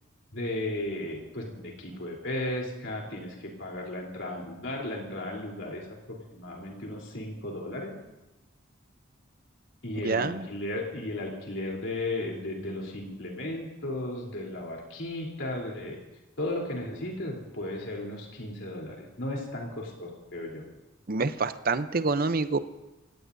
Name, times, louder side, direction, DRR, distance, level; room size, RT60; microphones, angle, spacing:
voice 1, 0.3-7.9 9.8-16.0 16.4-20.7, left 1 dB, 60° left, -1 dB, 3.6 m, -35 dB
voice 2, 9.9-10.5 21.1-22.6, right 3 dB, 45° right, 12 dB, 0.7 m, -27 dB
27.5 x 17.0 x 2.7 m, 1.0 s
head